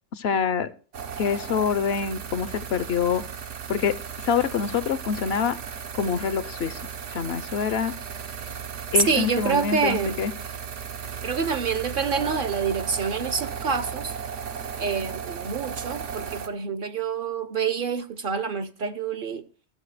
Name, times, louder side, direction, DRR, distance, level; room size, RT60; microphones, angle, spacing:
voice 1, 0.2-0.7 1.2-3.2 3.7-4.0 4.3-5.6 6.0-6.8 7.1-7.9 8.9-10.3, left 7 dB, 65° left, 0.8 m, -25 dB
sound 1, 0.9-16.5, right 7 dB, 85° right, 1.2 m, -35 dB
voice 2, 8.9-10.2 11.2-14.1 14.8-19.5, right 5 dB, 55° right, 0.7 m, -27 dB
14.5 x 6.4 x 4.8 m
omnidirectional pair, 1.2 m